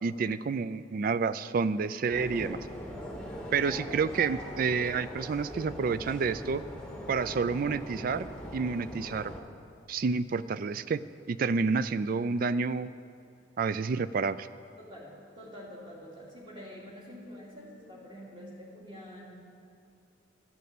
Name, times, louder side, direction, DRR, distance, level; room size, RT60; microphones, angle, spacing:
voice 1, 0.0-2.6 3.5-6.6 7.1-9.3 9.9-11.0 11.3-12.9 13.6-14.5, right 5 dB, 50° right, 15 dB, 0.3 m, -29 dB
sound 1, 2.1-9.4, equal, 5° left, 1.2 m, -41 dB
voice 2, 14.8-19.3, equal, 25° right, -5 dB, 2.7 m, -47 dB
12.5 x 6.8 x 8.4 m, 2.4 s
head